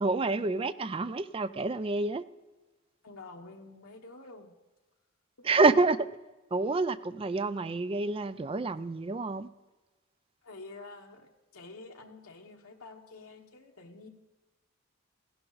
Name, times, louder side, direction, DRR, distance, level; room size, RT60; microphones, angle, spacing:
voice 1, 0.0-2.2 5.4-6.0 6.5-9.5, right 3 dB, 25° right, 14 dB, 0.4 m, -28 dB
voice 2, 3.0-4.6 5.4-5.5 10.4-14.1, left 3 dB, 85° left, 1 dB, 1.1 m, -48 dB
15.0 x 11.5 x 4.0 m, 1.2 s
head